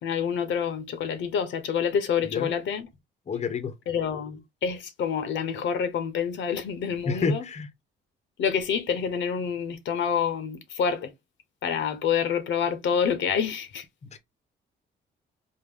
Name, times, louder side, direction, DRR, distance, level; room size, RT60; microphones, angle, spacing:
voice 1, 0.0-2.9 3.9-7.4 8.4-11.1 11.6-13.9, left 7 dB, 70° left, 0.8 m, -27 dB
voice 2, 3.3-3.7 7.1-7.7 14.1-14.2, left 4 dB, 35° left, 0.7 m, -28 dB
3.6 x 2.1 x 3.5 m
cardioid pair, 90°, 20 cm